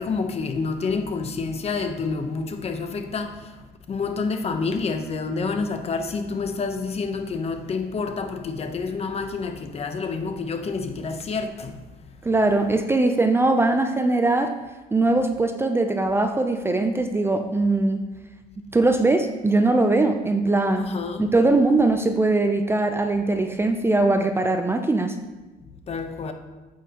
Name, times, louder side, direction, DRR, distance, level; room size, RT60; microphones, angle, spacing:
voice 1, 0.0-3.6 3.9-11.8 20.8-21.3 25.9-26.3, left 4 dB, 35° left, 0.9 m, -28 dB
voice 2, 12.2-14.5 14.9-18.0 18.7-20.9 21.2-25.2, right 2 dB, 15° right, 0.5 m, -21 dB
8.3 x 8.2 x 2.9 m
cardioid pair, 110°, 17 cm